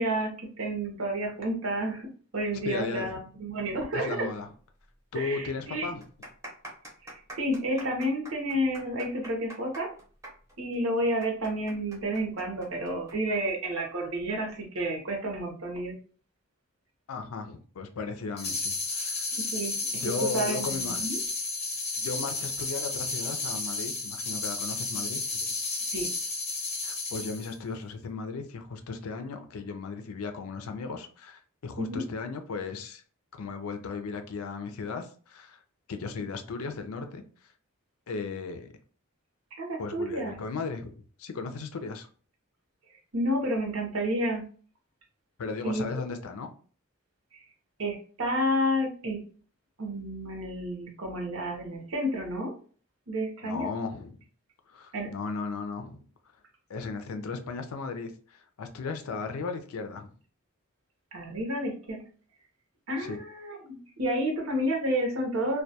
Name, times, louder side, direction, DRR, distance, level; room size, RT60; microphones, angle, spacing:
voice 1, 0.0-4.3 5.1-5.9 7.0-9.9 10.6-16.0 19.3-21.2 25.9-26.1 31.8-32.0 39.5-40.4 43.1-44.4 45.6-45.8 47.8-49.2 49.8-52.5 53.1-53.7 54.9-55.1 61.1-62.0 62.9-65.6, equal, 70° right, 0.8 m, -30 dB
voice 2, 2.6-3.2 3.9-4.5 5.1-6.1 17.1-19.3 19.9-21.0 22.0-25.5 26.8-33.0 33.3-35.6 35.9-37.2 38.1-38.7 39.8-42.1 45.4-46.5 53.4-54.2 54.7-56.1 56.7-60.1 63.0-63.2, left 4 dB, 80° left, 0.4 m, -36 dB
sound 1, 4.8-4.9 5.2-5.3 5.9-13.1 13.4-13.5 14.3-14.6, right 1 dB, 15° right, 0.7 m, -45 dB
sound 2, 18.4-27.5, left 3 dB, 30° left, 0.6 m, -32 dB
2.2 x 2.2 x 2.7 m
head